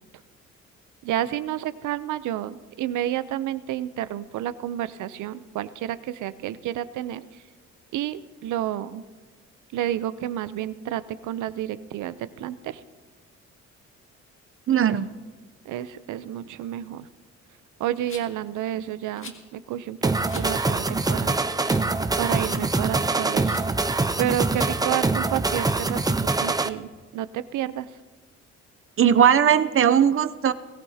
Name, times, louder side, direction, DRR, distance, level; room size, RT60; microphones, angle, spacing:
voice 1, 1.0-7.2 7.9-9.0 9.7-12.8 14.9-15.0 15.7-17.1 17.8-20.0 20.3-21.4 22.2-23.6 24.2-26.1 26.4-27.9, right 12 dB, 80° right, 14 dB, 0.7 m, -30 dB
voice 2, 14.7-15.1 29.0-30.5, right 9 dB, 45° right, 12 dB, 0.7 m, -18 dB
Rattle, 18.1-18.4 19.2-19.4 20.2-20.5 21.0-21.1 21.6-21.9 22.2-22.7 23.4-23.7 24.5-24.7, left 4 dB, 45° left, 1.9 m, -43 dB
sound 1, 20.0-26.7, right 3 dB, 15° right, 0.6 m, -24 dB
21.5 x 15.0 x 2.8 m, 1.4 s
cardioid pair, 90°, 30 cm